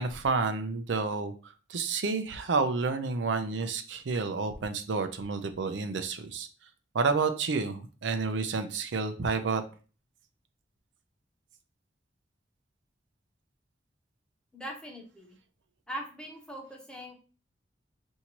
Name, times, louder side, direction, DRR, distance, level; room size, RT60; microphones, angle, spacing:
voice 1, 0.0-6.5 6.9-9.6, right 4 dB, 75° right, 8 dB, 0.5 m, -30 dB
voice 2, 14.5-15.4 15.9-17.1, equal, 5° left, 0 dB, 0.9 m, -41 dB
5.7 x 2.7 x 2.9 m, 0.36 s
head